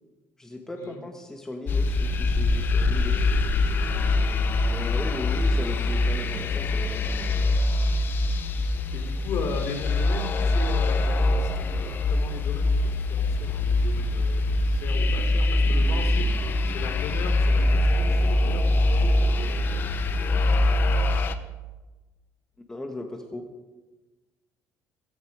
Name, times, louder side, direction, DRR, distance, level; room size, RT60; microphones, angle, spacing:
voice 1, 0.4-3.3 4.7-7.3 22.7-23.5, left 1 dB, 10° left, 4 dB, 1.4 m, -37 dB
sound 1, 1.7-21.3, left 2 dB, 40° left, 1.0 m, -23 dB
voice 2, 8.9-16.3 16.7-19.7, left 4 dB, 60° left, 5 dB, 3.6 m, -37 dB
17.0 x 16.5 x 5.0 m, 1.2 s
cardioid pair, 150°, 5 cm